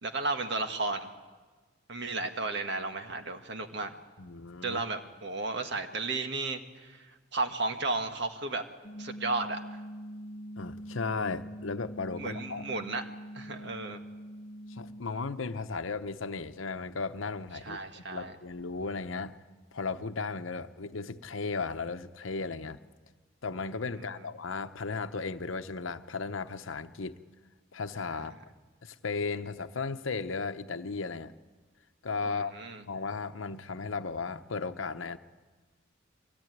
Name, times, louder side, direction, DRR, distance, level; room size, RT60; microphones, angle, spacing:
voice 1, 0.0-1.1 1.9-3.9 4.6-8.6 9.0-9.6 12.2-13.0 13.3-14.0 17.6-18.3 23.9-24.0 28.1-28.4 32.2-32.8, right 3 dB, 60° right, 6 dB, 1.7 m, -34 dB
voice 2, 4.2-4.8 10.6-12.6 14.7-17.8 18.1-19.4 19.7-22.8 23.4-27.2 27.7-28.3 28.8-31.3 32.0-32.5 32.9-35.2, left 4 dB, 80° left, 10 dB, 0.9 m, -35 dB
sound 1, 8.8-15.0, equal, 35° left, 0.8 m, -44 dB
23.5 x 17.0 x 9.4 m, 1.4 s
head